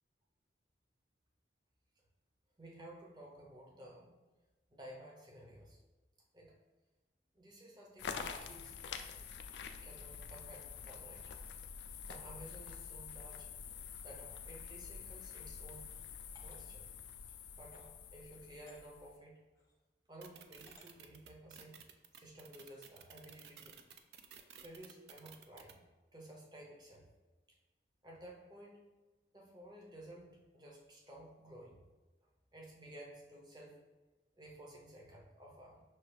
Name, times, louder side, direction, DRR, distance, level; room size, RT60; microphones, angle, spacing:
voice 1, 2.6-4.1 4.7-5.8 6.3-6.5 7.3-8.8 9.8-11.3 12.1-13.5 14.0-15.9 16.4-16.9 17.5-19.4 20.1-21.8 22.1-23.8 24.6-25.8 26.1-27.1 27.5-27.6 28.0-28.9 29.3-31.8 32.5-33.8 34.4-35.8, right 1 dB, 25° right, -3 dB, 0.7 m, -54 dB
sound 1, 8.0-19.2, left 6 dB, 85° left, 0.3 m, -47 dB
sound 2, 15.2-15.4 16.3-16.6 17.6-17.9 18.7-18.8 19.5-19.8 20.7-20.9, left 2 dB, 15° left, 0.5 m, -63 dB
sound 3, 20.2-25.7, right 8 dB, 70° right, 0.3 m, -54 dB
5.6 x 2.3 x 3.3 m, 1.2 s
head